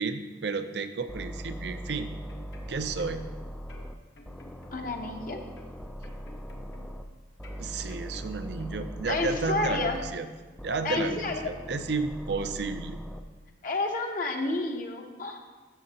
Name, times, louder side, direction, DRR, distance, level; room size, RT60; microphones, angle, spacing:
voice 1, 0.0-2.1 2.7-3.2 7.6-10.3 10.6-13.0, right 4 dB, 60° right, 9 dB, 0.5 m, -32 dB
sound 1, 1.1-3.9 4.2-7.0 7.4-10.1 10.6-13.2, equal, 5° left, 0.4 m, -40 dB
sound 2, 2.3-3.4 3.7-5.2 5.6-7.1 7.4-9.0 9.3-9.5, left 2 dB, 65° left, 1.3 m, -53 dB
voice 2, 4.7-5.4 9.1-10.0 10.8-11.5 13.6-15.4, left 2 dB, 45° left, 2 dB, 0.9 m, -30 dB
14.0 x 6.5 x 2.9 m, 1.3 s
head